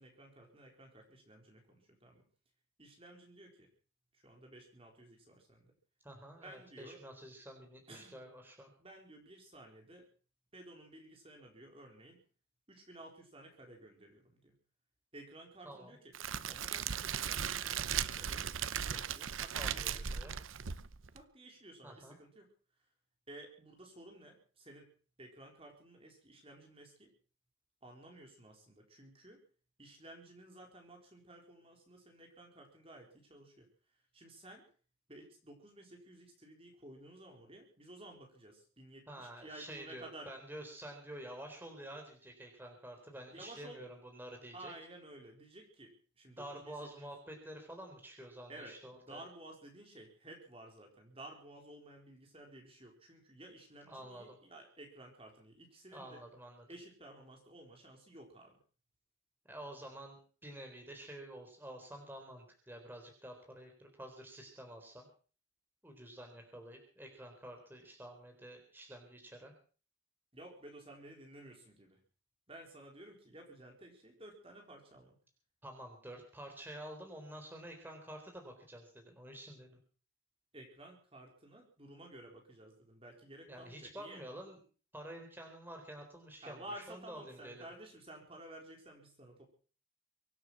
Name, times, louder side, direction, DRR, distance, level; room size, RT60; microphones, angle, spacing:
voice 1, 0.0-2.2 2.8-3.7 4.1-5.7 6.4-7.0 7.9-8.3 8.8-10.1 10.5-12.2 12.7-14.5 15.1-16.1 16.4-20.3 21.1-22.5 23.3-24.9 25.2-27.1 27.8-29.4 29.8-33.7 34.1-34.7 35.1-40.3 43.3-43.8 44.5-46.9 48.5-56.2 56.7-58.6 70.3-72.0 72.5-75.2 80.5-84.2 86.4-89.5, right 1 dB, 30° right, 2 dB, 3.9 m, -54 dB
voice 2, 6.0-8.7 15.6-15.9 19.5-20.4 21.8-22.2 39.1-44.7 46.4-49.2 53.9-54.4 55.9-56.6 59.5-65.1 65.8-69.5 75.6-79.8 83.5-84.6 84.9-87.7, right 1 dB, 10° right, 3 dB, 3.9 m, -49 dB
Crackle, 16.1-21.2, right 8 dB, 80° right, 0.8 m, -37 dB
24.0 x 9.4 x 6.2 m, 0.41 s
head